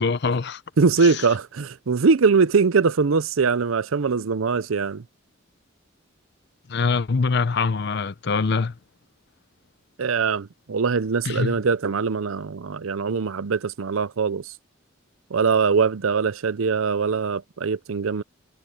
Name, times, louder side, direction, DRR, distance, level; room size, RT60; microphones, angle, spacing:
voice 1, 0.0-0.6 6.7-8.7 11.2-11.5, left 4 dB, 55° left, 0.6 m, -23 dB
voice 2, 0.8-5.0 10.0-14.5 15.3-18.2, right 5 dB, 80° right, 0.6 m, -22 dB
head